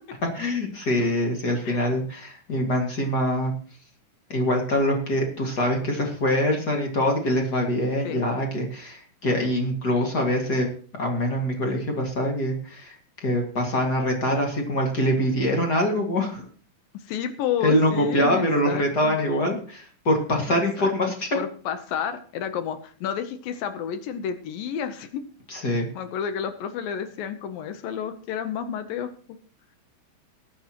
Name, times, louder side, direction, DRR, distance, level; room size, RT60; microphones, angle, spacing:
voice 1, 0.3-3.5 4.3-10.7 11.0-13.0 13.2-16.4 17.6-21.3 25.5-25.9, equal, 35° left, 1 dB, 1.8 m, -24 dB
voice 2, 8.0-8.4 16.9-19.2 20.5-20.9 21.3-25.2 25.9-29.4, left 8 dB, 75° left, 10 dB, 2.5 m, -31 dB
20.0 x 9.2 x 2.9 m, 0.44 s
omnidirectional pair, 4.2 m